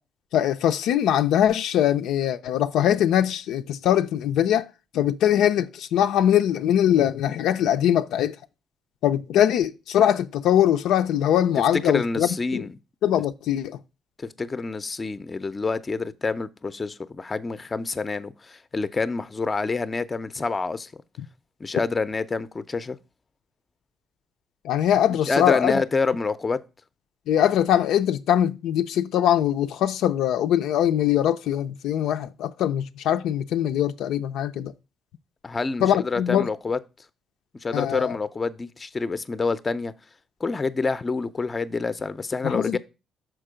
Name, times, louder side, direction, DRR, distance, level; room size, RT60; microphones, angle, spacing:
voice 1, 0.3-4.7 4.9-8.4 9.0-12.7 13.0-13.8 24.6-25.8 27.3-34.7 35.8-36.5 37.7-38.2 42.4-42.8, left 10 dB, 85° left, 0.4 m, -22 dB
voice 2, 11.8-12.7 14.2-20.9 21.6-23.0 25.3-26.6 35.4-36.8 37.6-39.9 40.4-42.8, left 4 dB, 30° left, 0.5 m, -27 dB
6.2 x 4.4 x 4.9 m
cardioid pair, 90°, 0 cm